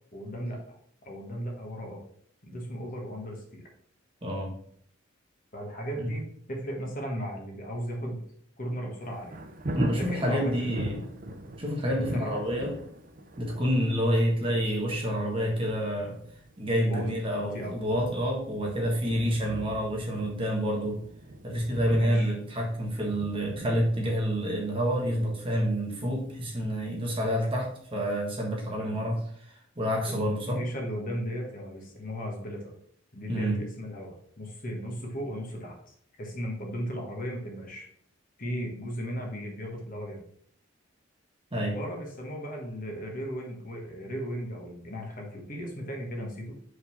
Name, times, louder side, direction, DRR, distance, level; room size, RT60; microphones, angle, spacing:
voice 1, 0.1-0.8 1.0-2.0 2.4-3.6 5.5-8.2 8.6-9.4 9.9-11.1 12.0-12.4 16.9-17.1 17.4-17.8 21.9-22.3 28.8-28.9 30.1-32.7 33.1-37.9 38.4-40.2 41.6-46.5, equal, 40° left, 0 dB, 1.4 m, -36 dB
Thunder, 9.0-27.8 28.2-28.3, right 1 dB, 40° right, 0.7 m, -41 dB
voice 2, 9.7-11.0 11.6-12.7 13.4-16.2 16.6-21.0 21.4-30.6 33.3-33.6 41.5-41.8, equal, 25° right, -1 dB, 1.4 m, -28 dB
5.0 x 3.9 x 5.7 m, 0.65 s
head